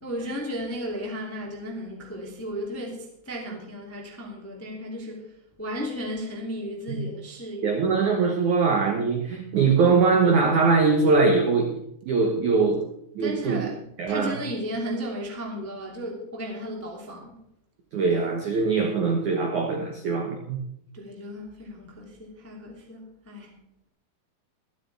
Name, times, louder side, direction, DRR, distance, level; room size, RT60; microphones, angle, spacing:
voice 1, 0.0-7.8 13.2-13.8 14.1-17.4 20.9-23.5, equal, 10° left, -1 dB, 0.8 m, -35 dB
voice 2, 7.6-12.8 13.1-13.6 14.0-14.4 17.9-20.6, right 4 dB, 85° right, 3 dB, 1.7 m, -22 dB
24.5 x 8.6 x 3.4 m, 0.75 s
omnidirectional pair, 5.7 m